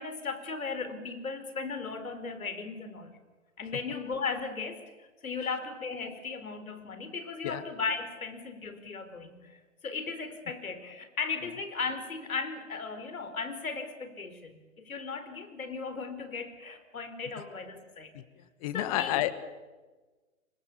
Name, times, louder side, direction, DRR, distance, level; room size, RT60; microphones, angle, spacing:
voice 1, 0.0-3.2 3.6-18.1 18.7-19.2, left 4 dB, 85° left, 10 dB, 4.4 m, -37 dB
voice 2, 18.6-19.3, left 15 dB, 25° left, 14 dB, 1.5 m, -29 dB
28.0 x 25.0 x 7.1 m, 1.3 s
hypercardioid pair, 150°, 41 cm